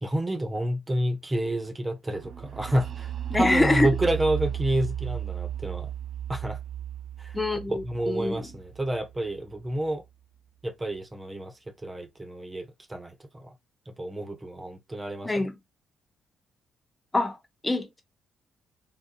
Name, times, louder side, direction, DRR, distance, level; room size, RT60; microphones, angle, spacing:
voice 1, 0.0-5.9 6.3-6.6 7.2-7.4 7.7-10.0 10.6-11.5 11.8-13.5 13.9-15.5, right 1 dB, 20° right, 0.8 m, -29 dB
sound 1, 2.2-9.9, right 11 dB, 60° right, 0.5 m, -35 dB
voice 2, 3.3-3.9 7.3-8.5 15.2-15.6 17.1-17.4 17.6-18.0, left 2 dB, 15° left, 0.7 m, -25 dB
3.8 x 2.6 x 2.3 m
cardioid pair, 90°, 0 cm